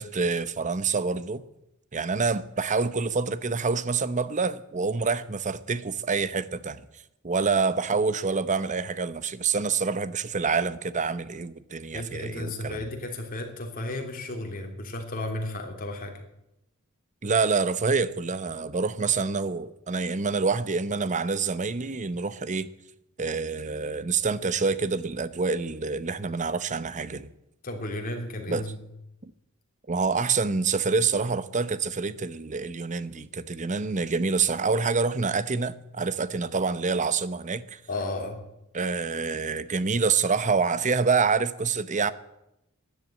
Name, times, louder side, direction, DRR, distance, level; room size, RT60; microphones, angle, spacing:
voice 1, 0.0-1.4 1.9-6.8 7.2-12.8 17.2-22.7 23.2-27.3 28.5-28.7 29.2-29.3 29.9-37.8 38.7-42.1, right 4 dB, 35° right, 0.8 m, -27 dB
voice 2, 11.9-16.1 27.6-28.8 37.9-38.4, left 2 dB, 40° left, 3.1 m, -33 dB
14.0 x 10.5 x 9.0 m
head